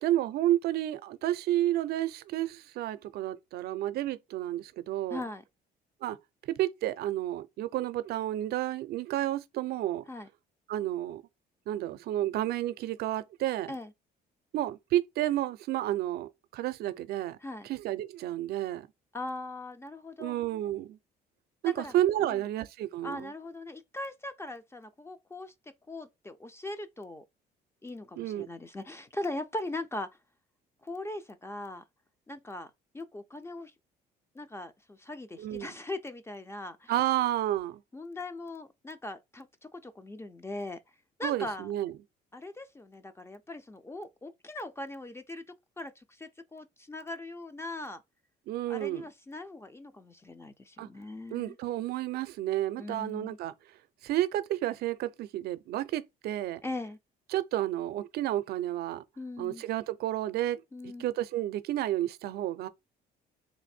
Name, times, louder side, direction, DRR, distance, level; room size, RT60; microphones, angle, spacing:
voice 1, 0.0-5.2 6.0-6.2 6.5-10.0 10.7-11.2 11.7-13.7 14.5-17.4 17.7-18.9 20.2-21.0 21.6-23.3 28.2-28.5 35.4-35.7 36.9-37.8 41.2-41.9 48.5-49.0 50.8-50.9 51.3-53.5 54.0-56.6 57.3-59.0 59.4-62.7, right 13 dB, 70° right, 0.5 m, -31 dB
voice 2, 5.1-5.4 10.1-10.3 13.7-13.9 17.4-17.7 19.1-20.4 21.8-21.9 22.2-22.4 23.0-25.5 25.9-27.2 27.8-30.1 30.8-31.8 32.3-33.7 34.3-36.9 37.9-40.8 41.2-41.7 42.3-45.4 45.8-48.0 48.7-51.6 52.8-53.4 56.6-57.0 59.2-59.6 60.7-61.1, left 2 dB, 15° left, 0.4 m, -40 dB
3.2 x 2.6 x 4.2 m
cardioid pair, 110°, 17 cm